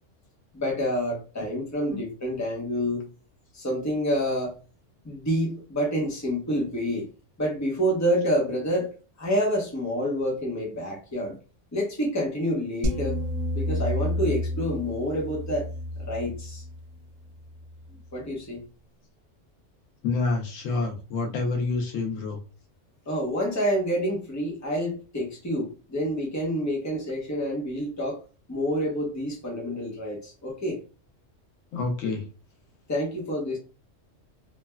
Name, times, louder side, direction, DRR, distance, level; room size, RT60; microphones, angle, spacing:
voice 1, 0.5-3.1 3.5-4.6 5.0-7.1 7.4-8.9 9.2-11.3 11.7-13.2 13.5-15.7 16.0-16.6 18.1-18.6 23.1-28.2 28.5-30.8 32.9-33.6, equal, 15° left, -2 dB, 0.8 m, -28 dB
sound 1, 12.8-18.1, left 1 dB, 60° right, 0.4 m, -31 dB
voice 2, 20.0-22.4 31.7-32.2, left 3 dB, 85° left, 2 dB, 1.1 m, -28 dB
3.2 x 2.2 x 2.2 m, 0.34 s
omnidirectional pair, 1.3 m